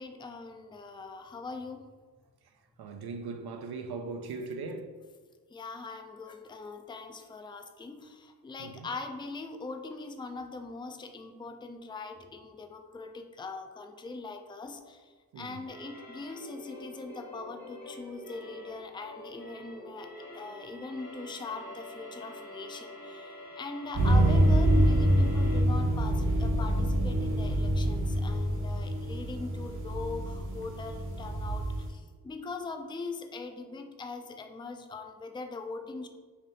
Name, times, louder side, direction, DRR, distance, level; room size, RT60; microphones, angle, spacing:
voice 1, 0.0-1.9 5.5-36.1, left 3 dB, 15° left, 0.3 m, -41 dB
voice 2, 2.8-4.9 8.6-8.9 15.3-15.6, right 4 dB, 80° right, 0.5 m, -39 dB
sound 1, 15.7-25.6, left 1 dB, 75° left, 1.0 m, -46 dB
sound 2, 23.9-31.9, right 1 dB, 50° right, 1.1 m, -26 dB
3.3 x 2.7 x 3.9 m
cardioid pair, 70°, 38 cm